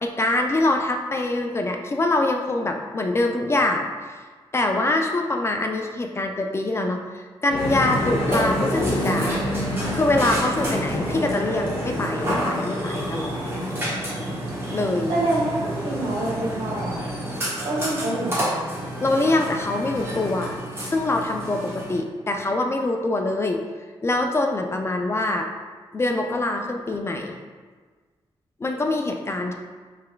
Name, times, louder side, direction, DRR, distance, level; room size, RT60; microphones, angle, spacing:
voice 1, 0.0-3.9 4.5-9.4 9.9-13.4 14.7-15.1 19.0-20.6 20.8-23.6 24.0-25.5 25.9-27.4 28.6-29.5, left 2 dB, 25° left, 3 dB, 0.3 m, -24 dB
sound 1, 7.5-14.5, left 1 dB, 85° left, 0.8 m, -29 dB
Burping eructation, 7.6-22.0, right 1 dB, 25° right, 1.0 m, -30 dB
voice 2, 15.1-15.6 15.8-17.0 17.6-18.4, right 1 dB, 75° right, -6 dB, 1.4 m, -26 dB
5.3 x 3.3 x 2.2 m, 1.4 s
wide cardioid pair, 130°, 10 cm